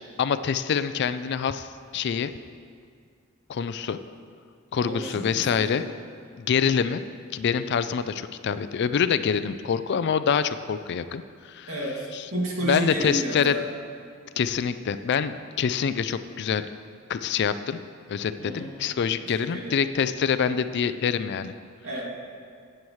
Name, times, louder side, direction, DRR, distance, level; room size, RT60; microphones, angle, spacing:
voice 1, 0.2-2.3 3.5-4.0 4.7-5.8 6.4-7.0 7.3-11.7 12.1-12.2 12.6-13.6 14.4-16.7 17.1-17.8 18.1-21.5, left 7 dB, 55° left, 12 dB, 0.4 m, -26 dB
voice 2, 4.8-5.8 11.7-13.6 18.4-18.7 19.2-19.8 21.8-22.1, right 1 dB, 75° right, -4 dB, 2.4 m, -31 dB
15.5 x 7.7 x 3.2 m, 2.1 s
head